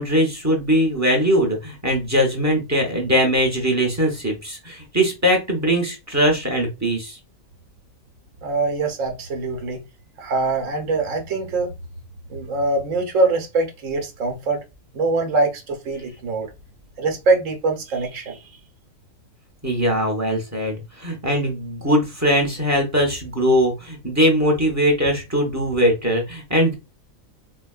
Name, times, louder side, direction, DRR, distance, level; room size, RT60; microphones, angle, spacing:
voice 1, 0.0-7.2 19.6-26.7, equal, 15° right, 0.7 m, -21 dB
voice 2, 8.4-9.8 10.2-11.7 12.3-14.6 14.9-16.5 17.0-18.4, right 3 dB, 70° right, 1.2 m, -23 dB
4.4 x 2.2 x 2.4 m
omnidirectional pair, 1.4 m